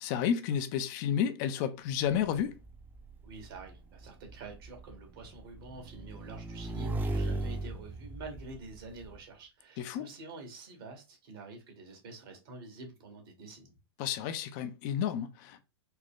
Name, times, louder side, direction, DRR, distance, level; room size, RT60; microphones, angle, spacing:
voice 1, 0.0-2.5 9.8-10.1 14.0-15.6, left 8 dB, 45° left, 0.5 m, -31 dB
Motorcycle / Engine, 2.1-9.2, right 2 dB, 15° right, 0.5 m, -38 dB
voice 2, 3.2-13.8, right 3 dB, 60° right, 1.6 m, -47 dB
4.1 x 2.2 x 3.7 m
hypercardioid pair, 105°, 14 cm